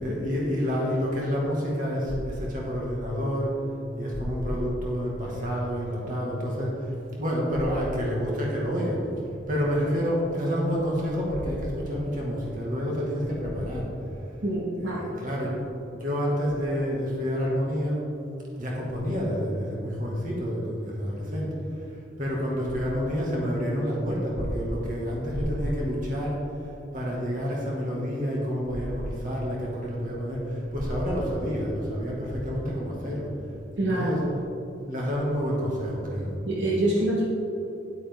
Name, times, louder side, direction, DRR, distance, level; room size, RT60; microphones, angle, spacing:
voice 1, 0.0-3.5 4.0-9.0 9.5-13.9 14.8-15.6 15.9-18.0 18.5-21.5 22.2-26.4 26.9-33.3 33.9-34.2 34.9-36.3, equal, 45° right, -4 dB, 2.0 m, -28 dB
voice 2, 14.4-15.0 33.8-34.2 36.5-37.2, right 1 dB, 70° right, -5 dB, 1.6 m, -25 dB
10.0 x 8.5 x 3.7 m, 2.8 s
head